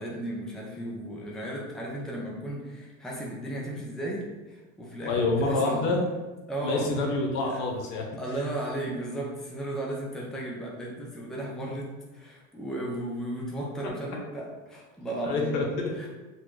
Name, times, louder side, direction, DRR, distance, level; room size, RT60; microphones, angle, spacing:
voice 1, 0.0-6.0 6.5-6.9 7.4-7.7 8.2-15.6 15.9-16.1, right 1 dB, ahead, -3 dB, 0.6 m, -35 dB
voice 2, 5.0-6.0 6.6-8.1 15.2-16.1, left 2 dB, 55° left, 0 dB, 0.9 m, -27 dB
4.2 x 2.2 x 3.2 m, 1.2 s
hypercardioid pair, 90°, 39 cm